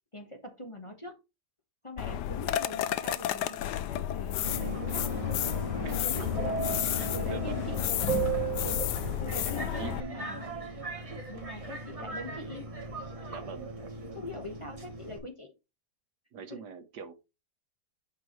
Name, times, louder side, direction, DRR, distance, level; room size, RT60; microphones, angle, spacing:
voice 1, 0.1-1.2 1.8-5.1 5.8-6.7 7.1-7.8 8.6-8.9 9.2-10.6 11.3-12.7 14.1-15.5 16.5-16.6, left 1 dB, 20° left, 1.3 m, -43 dB
sound 1, 2.0-10.0, left 12 dB, 90° left, 1.2 m, -32 dB
Subway metro underground, 4.4-15.2, right 4 dB, 25° right, 1.2 m, -36 dB
voice 2, 5.8-6.3 7.0-7.7 9.4-10.2 13.3-13.7 16.3-17.1, right 6 dB, 75° right, 1.6 m, -43 dB
9.0 x 5.6 x 3.2 m
omnidirectional pair, 1.8 m